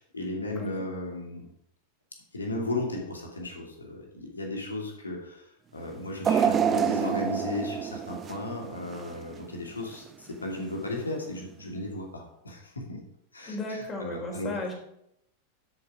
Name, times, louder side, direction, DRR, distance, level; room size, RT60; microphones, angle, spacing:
voice 1, 0.0-1.5 2.3-5.5 5.7-13.0 13.3-14.5, left 2 dB, 75° left, 1 dB, 2.6 m, -35 dB
sound 1, 6.2-9.4 9.8-10.0 11.0-11.1, right 8 dB, 25° right, 0.7 m, -27 dB
voice 2, 13.5-14.7, left 2 dB, 25° left, 1 dB, 3.7 m, -35 dB
12.5 x 6.9 x 4.9 m, 0.77 s
figure-of-eight pair, 90°, 0 cm